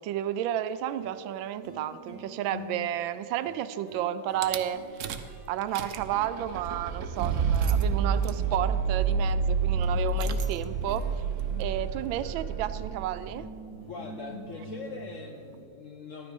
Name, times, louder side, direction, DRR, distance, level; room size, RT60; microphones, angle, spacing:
voice 1, 0.0-4.8 5.5-11.1 11.6-13.5, right 11 dB, 90° right, 13 dB, 1.3 m, -32 dB
sound 1, 0.6-0.7 1.0-8.3 9.8-15.6, equal, 50° left, 2.6 m, -47 dB
Rattle / Car / Engine starting, 4.4-4.6 5.0-5.3 5.6-13.4, right 5 dB, 70° right, 0.7 m, -29 dB
voice 2, 13.9-16.3, left 4 dB, 65° left, 4 dB, 0.8 m, -42 dB
12.0 x 9.3 x 5.2 m, 2.4 s
omnidirectional pair, 2.1 m